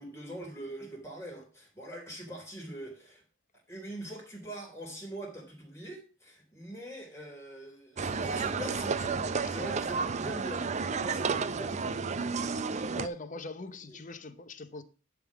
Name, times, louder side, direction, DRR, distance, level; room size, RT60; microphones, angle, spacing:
voice 1, 0.0-3.2 3.7-12.0, right 1 dB, 15° left, 3.1 m, -43 dB
sound 1, 8.0-13.1, right 5 dB, 35° right, 0.4 m, -31 dB
voice 2, 12.8-14.8, left 2 dB, 40° left, 0.8 m, -42 dB
11.0 x 3.8 x 5.9 m
head